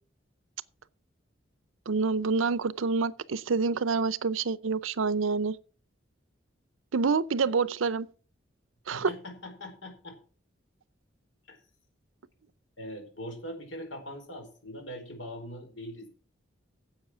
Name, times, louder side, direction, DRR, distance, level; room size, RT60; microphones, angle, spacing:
voice 1, 1.9-5.6 6.9-8.1 8.9-9.1, right 4 dB, 90° right, 0.6 m, -27 dB
voice 2, 8.9-10.2 11.5-11.6 12.8-16.1, equal, 75° left, 4.3 m, -42 dB
10.5 x 7.8 x 6.2 m
head